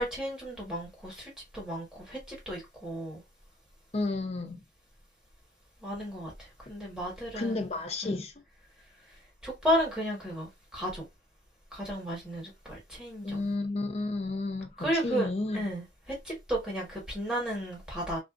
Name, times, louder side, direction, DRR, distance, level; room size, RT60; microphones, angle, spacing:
voice 1, 0.0-3.2 5.8-7.7 8.0-8.2 9.4-11.1 11.7-13.4 14.8-15.3 15.5-18.2, equal, 5° right, 1.4 m, -33 dB
voice 2, 3.9-4.6 7.3-8.3 13.2-15.7, left 2 dB, 35° left, 0.5 m, -32 dB
2.4 x 2.4 x 2.3 m
head